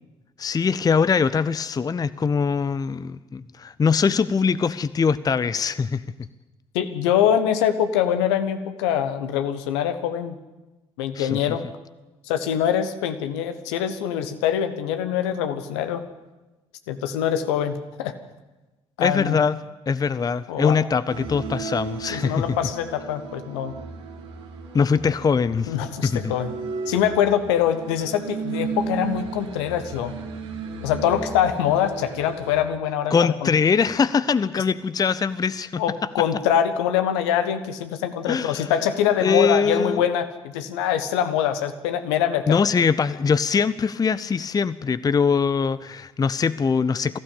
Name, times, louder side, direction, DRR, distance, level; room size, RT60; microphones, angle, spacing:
voice 1, 0.4-6.0 11.1-11.4 19.0-19.6 19.9-22.4 24.7-25.7 26.0-26.3 33.1-35.8 38.3-38.7 39.2-40.0 42.5-47.2, left 5 dB, 25° left, 16 dB, 0.6 m, -22 dB
voice 2, 6.7-10.3 11.0-11.7 12.3-16.1 16.9-18.2 19.0-19.4 20.5-20.8 22.1-23.8 25.7-26.5 26.9-30.1 30.8-33.5 35.8-42.6, left 9 dB, 70° left, 9 dB, 1.4 m, -24 dB
sound 1, 21.1-32.6, right 5 dB, 75° right, 2.7 m, -35 dB
22.0 x 15.5 x 8.5 m, 1.1 s
figure-of-eight pair, 50°, 15 cm